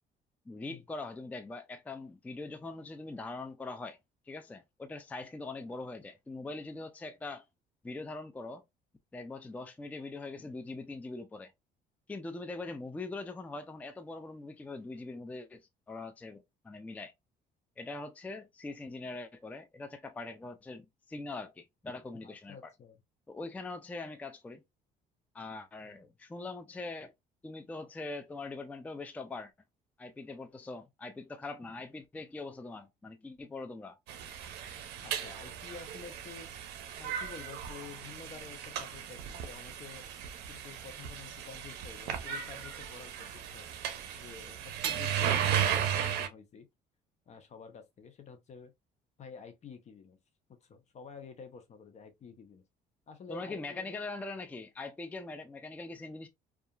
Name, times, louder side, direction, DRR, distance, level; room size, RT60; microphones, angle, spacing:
voice 1, 0.5-4.0 4.3-7.5 7.8-8.6 9.1-11.5 12.1-15.6 15.9-17.1 17.8-22.7 23.3-24.6 25.3-27.1 27.4-29.5 30.0-34.0 53.3-56.3, left 3 dB, 10° left, 0.3 m, -42 dB
voice 2, 22.2-23.0 25.8-26.0 35.0-36.5 37.0-40.0 40.5-43.7 44.1-46.7 47.3-48.7 49.2-50.2 50.6-52.6 53.1-53.9, left 6 dB, 40° left, 0.6 m, -50 dB
sound 1, 34.1-46.3, right 9 dB, 80° right, 0.5 m, -35 dB
2.7 x 2.4 x 2.3 m
cardioid pair, 110°, 17 cm